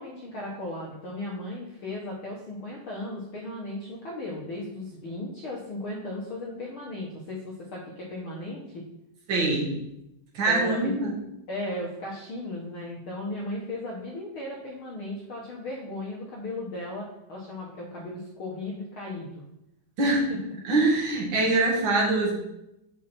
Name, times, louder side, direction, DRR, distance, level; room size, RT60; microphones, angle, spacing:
voice 1, 0.0-8.8 10.4-10.9 11.5-19.4 20.0-20.4, left 1 dB, 60° left, -4 dB, 1.5 m, -36 dB
voice 2, 9.3-9.8 10.3-11.1 20.0-20.3 20.6-22.3, right 2 dB, 45° right, -2 dB, 2.1 m, -23 dB
8.7 x 5.8 x 4.3 m, 0.86 s
omnidirectional pair, 3.7 m